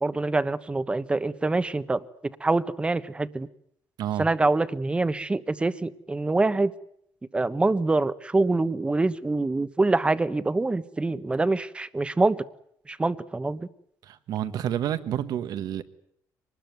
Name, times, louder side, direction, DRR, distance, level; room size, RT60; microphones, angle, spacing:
voice 1, 0.0-2.0 2.4-3.5 4.2-6.7 7.3-12.4 12.9-13.7, right 2 dB, 15° right, 1.1 m, -25 dB
voice 2, 14.0-15.8, right 10 dB, 75° right, 1.6 m, -29 dB
24.0 x 20.0 x 9.5 m
cardioid pair, 125°, 7 cm